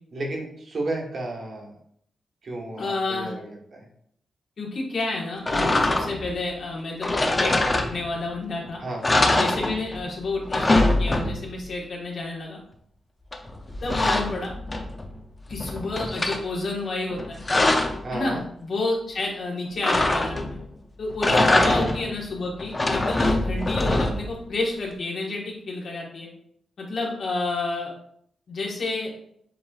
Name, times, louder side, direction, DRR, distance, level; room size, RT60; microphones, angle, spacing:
voice 1, 0.1-1.7 2.4-3.9 8.8-9.1 18.0-18.4 21.3-21.7, right 2 dB, 50° right, -1 dB, 1.2 m, -32 dB
voice 2, 2.8-3.3 4.6-8.8 9.3-12.6 13.8-14.5 15.5-17.4 18.1-20.6 21.0-26.3 26.8-27.9 28.5-29.1, left 2 dB, 55° left, -2 dB, 1.3 m, -30 dB
sound 1, 5.4-6.3 7.0-8.3 8.6-8.7 9.0-10.1 10.3-11.6 13.3-15.1 15.5-16.4 17.1-18.0 19.8-20.6 21.1-22.1 22.6-24.4, left 2 dB, 20° left, 0.5 m, -23 dB
7.4 x 3.0 x 2.4 m, 0.67 s
wide cardioid pair, 135°, 0 cm